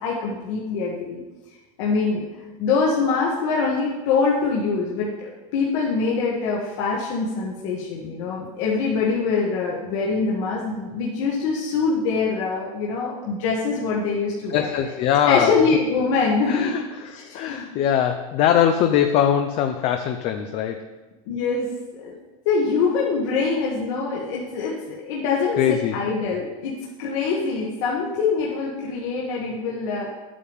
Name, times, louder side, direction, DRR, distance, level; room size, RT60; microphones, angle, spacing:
voice 1, 0.0-1.2 1.8-2.2 2.6-14.7 15.3-16.8 17.0-17.7 21.2-22.2 22.4-30.1, left 4 dB, 65° left, -4 dB, 1.6 m, -24 dB
voice 2, 14.5-15.6 16.5-20.9 25.6-26.0, left 9 dB, 35° left, 7 dB, 0.5 m, -22 dB
10.5 x 8.5 x 3.6 m, 1.2 s
supercardioid pair, 165°, 17 cm